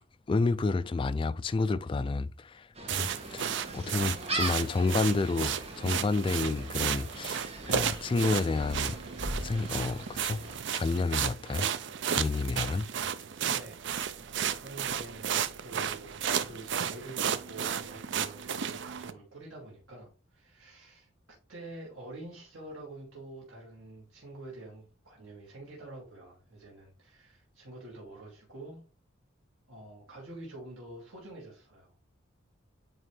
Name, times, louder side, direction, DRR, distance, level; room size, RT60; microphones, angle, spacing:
voice 1, 0.3-9.0 9.4-10.4 10.7-11.7 12.1-12.9, left 3 dB, 25° left, 0.3 m, -30 dB
Gull seagull, 2.7-10.6, right 2 dB, 30° right, 1.5 m, -40 dB
sound 1, 2.9-19.1, right 8 dB, 60° right, 0.5 m, -33 dB
voice 2, 13.5-21.1 21.5-28.8 29.7-31.9, right 2 dB, 80° right, 2.3 m, -47 dB
9.1 x 3.2 x 3.2 m
head